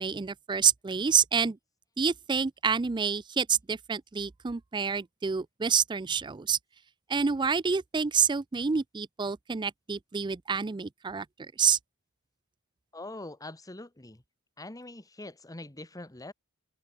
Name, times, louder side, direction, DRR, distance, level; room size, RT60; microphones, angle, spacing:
voice 1, 0.0-1.6 2.0-6.6 7.1-11.8, right 6 dB, 20° right, 0.4 m, -28 dB
voice 2, 12.9-14.2 14.6-16.3, left 2 dB, 15° left, 1.2 m, -43 dB
head